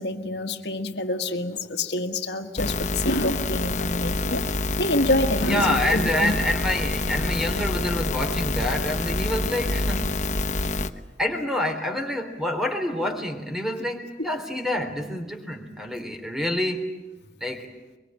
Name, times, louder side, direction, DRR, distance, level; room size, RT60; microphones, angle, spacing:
voice 1, 0.0-4.5 4.8-6.3, left 1 dB, 75° left, 1.7 m, -27 dB
sound 1, 2.6-10.9, left 2 dB, 45° left, 1.1 m, -27 dB
voice 2, 5.4-10.8 11.2-16.8 17.4-17.7, left 1 dB, ahead, 3.4 m, -27 dB
23.5 x 23.5 x 8.9 m
head